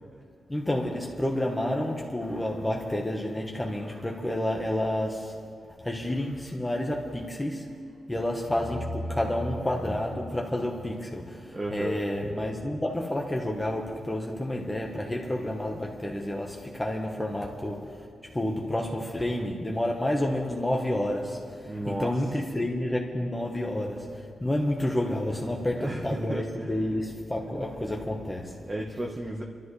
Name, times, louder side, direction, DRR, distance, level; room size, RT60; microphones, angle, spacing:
voice 1, 0.5-5.5 5.8-7.8 8.1-28.6, left 1 dB, 10° left, 1.2 m, -30 dB
voice 2, 11.5-12.0 21.6-22.1 25.7-26.9 28.7-29.4, right 1 dB, 25° right, 1.2 m, -34 dB
26.0 x 13.0 x 3.2 m
cardioid pair, 100°, 0 cm